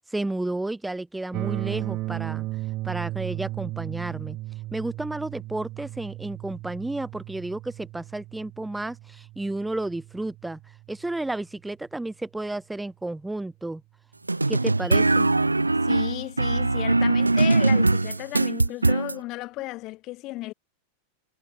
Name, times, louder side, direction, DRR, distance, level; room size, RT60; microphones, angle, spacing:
voice 1, 0.1-2.5 2.8-4.4 4.7-10.6 10.9-13.8 14.5-15.3, right 2 dB, 5° right, 3.7 m, -32 dB
sound 1, 1.3-11.3, right 18 dB, 40° right, 1.9 m, -35 dB
sound 2, 14.3-19.2, right 2 dB, 80° right, 0.6 m, -21 dB
voice 2, 15.8-20.5, left 19 dB, 40° left, 4.8 m, -34 dB
figure-of-eight pair, 90°, 0 cm